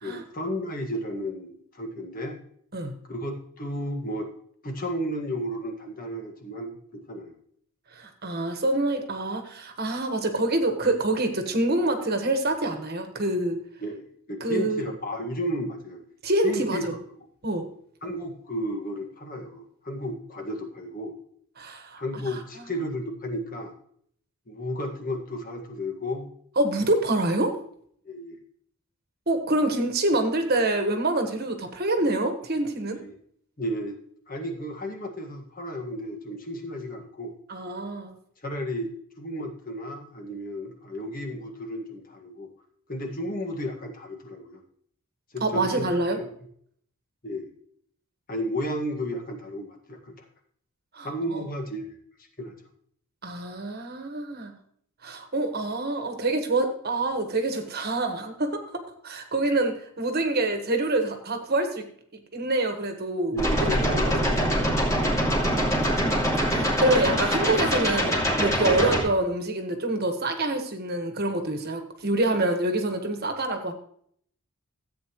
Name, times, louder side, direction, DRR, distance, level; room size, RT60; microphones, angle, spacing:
voice 1, 0.0-2.4 3.1-4.3 4.6-7.3 13.8-16.0 16.4-16.9 17.2-17.3 18.0-21.1 22.0-23.7 24.5-26.3 28.1-28.4 33.0-33.2 33.6-34.0 34.3-37.3 38.4-38.9 39.2-42.5 42.9-44.6 45.3-45.9 46.1-46.3 47.2-47.5 48.3-50.3 51.0-52.0 52.4-52.5 63.3-65.2, equal, 40° left, 3 dB, 1.8 m, -33 dB
voice 2, 7.9-13.6 14.4-14.9 16.2-16.9 17.4-17.7 21.6-22.0 22.3-22.4 26.6-27.5 29.3-33.0 37.5-38.1 45.4-46.2 50.9-51.4 53.2-54.5 55.0-61.8 62.3-63.3 63.6-64.5 65.2-73.7, right 2 dB, 45° right, 6 dB, 1.4 m, -26 dB
sound 1, 63.4-69.0, equal, 15° left, 2.6 m, -24 dB
14.5 x 8.6 x 3.1 m, 0.63 s
head